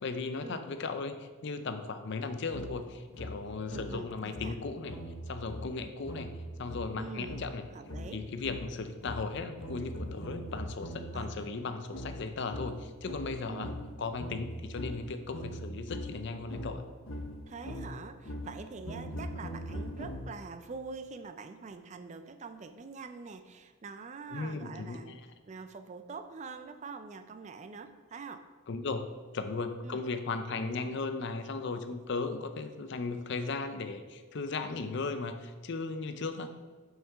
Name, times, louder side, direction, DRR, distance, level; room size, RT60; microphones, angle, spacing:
voice 1, 0.0-5.0 5.3-6.3 6.6-7.6 8.1-13.7 14.0-16.8 19.1-19.2 24.3-25.2 28.7-29.1 29.3-36.5, left 4 dB, 55° left, 8 dB, 0.5 m, -36 dB
sound 1, 2.5-11.3 11.9-20.6, equal, 75° left, 1.0 m, -42 dB
voice 2, 3.7-4.5 6.9-7.4 7.7-8.2 11.1-11.5 13.4-13.8 17.5-25.2 25.5-28.4 29.8-30.0 36.4-36.5, right 4 dB, 30° right, 9 dB, 0.4 m, -45 dB
5.8 x 5.7 x 4.6 m, 1.4 s
head